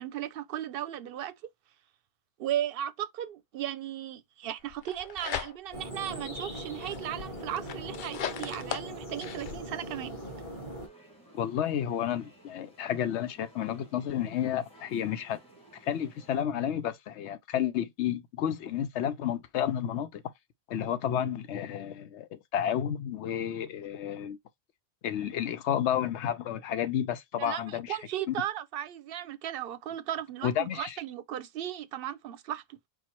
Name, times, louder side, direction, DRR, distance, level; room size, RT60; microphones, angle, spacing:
voice 1, 0.0-1.3 2.4-10.2 27.4-32.8, right 11 dB, 65° right, 0.7 m, -36 dB
sound 1, 4.7-5.9 6.3-9.6, left 9 dB, 60° left, 0.6 m, -38 dB
sound 2, 5.7-10.9, equal, 30° left, 2.0 m, -40 dB
sound 3, 10.8-16.4, right 1 dB, 5° left, 1.5 m, -57 dB
voice 2, 11.3-15.4 15.8-20.2 20.7-24.4 25.0-28.0 28.3-28.4 30.4-31.0, left 10 dB, 85° left, 0.9 m, -31 dB
4.5 x 2.3 x 4.4 m
omnidirectional pair, 1.1 m